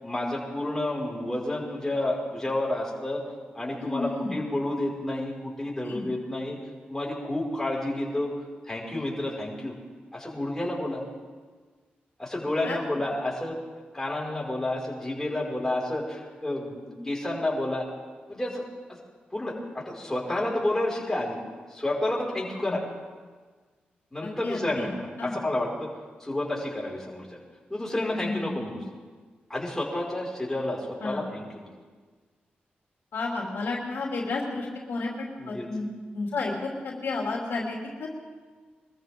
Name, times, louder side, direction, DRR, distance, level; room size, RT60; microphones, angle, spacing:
voice 1, 0.0-3.2 3.5-6.6 6.9-8.3 8.6-9.7 10.1-11.0 12.2-13.6 13.9-17.9 18.3-18.6 18.9-19.0 19.3-21.4 21.7-22.8 24.1-25.9 26.2-27.4 27.7-28.8 29.5-31.7 35.4-35.6, left 1 dB, 15° left, -4 dB, 5.4 m, -30 dB
voice 2, 3.8-4.3 5.8-6.0 12.6-12.8 22.6-22.8 24.2-24.9 25.2-25.3 28.2-28.5 31.0-31.2 33.1-35.9 36.1-38.1, left 3 dB, 80° left, -2 dB, 2.9 m, -32 dB
24.0 x 14.0 x 3.7 m, 1.4 s
cardioid pair, 65°, 4 cm